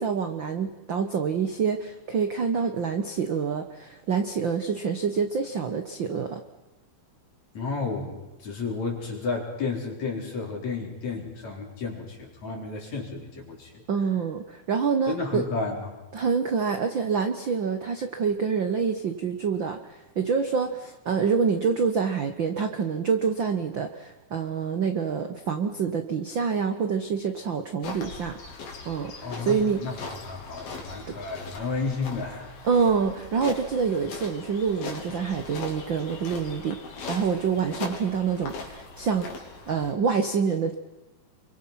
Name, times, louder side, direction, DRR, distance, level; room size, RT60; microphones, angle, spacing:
voice 1, 0.0-6.4 13.9-15.4 16.1-28.4 28.8-29.8 31.1-31.2 32.6-36.8 37.1-39.3 39.7-40.7, right 6 dB, 75° right, 7 dB, 1.0 m, -26 dB
voice 2, 7.6-13.8 15.1-15.9 29.2-32.5, left 4 dB, 50° left, 1 dB, 5.4 m, -32 dB
sound 1, 27.8-39.9, left 4 dB, 75° left, 5.1 m, -40 dB
29.0 x 24.0 x 5.9 m, 1.1 s
omnidirectional pair, 4.2 m